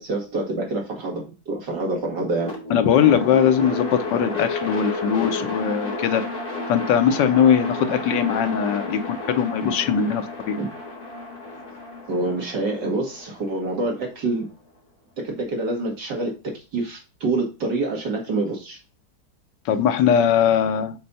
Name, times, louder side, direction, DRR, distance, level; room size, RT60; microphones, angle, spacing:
voice 1, 0.0-2.5 10.6-10.7 12.1-14.5 15.2-16.3 16.7-18.8, right 2 dB, 75° right, 0 dB, 2.7 m, -26 dB
sound 1, 2.4-14.5, left 2 dB, 20° left, 2.9 m, -32 dB
voice 2, 2.7-6.2 6.7-10.6 19.6-20.9, left 8 dB, 85° left, 9 dB, 1.4 m, -20 dB
6.6 x 4.3 x 4.2 m, 0.31 s
omnidirectional pair, 1.9 m